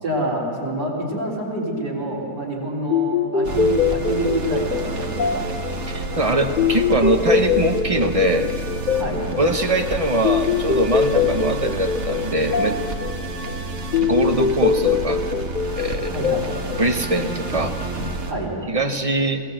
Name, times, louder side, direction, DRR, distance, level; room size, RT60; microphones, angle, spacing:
voice 1, 0.0-5.5 8.9-9.2 16.0-16.5 18.3-18.5, right 1 dB, 85° right, -4 dB, 4.3 m, -27 dB
sound 1, 2.9-17.7, left 6 dB, 55° left, 0.5 m, -24 dB
sound 2, 3.4-18.3, right 2 dB, 45° right, 1.7 m, -30 dB
voice 2, 5.9-8.5 9.4-12.8 14.0-15.3 15.8-16.2 16.8-17.8 18.7-19.4, right 1 dB, 25° right, 6 dB, 0.8 m, -22 dB
22.0 x 17.5 x 7.8 m, 2.5 s
omnidirectional pair, 1.7 m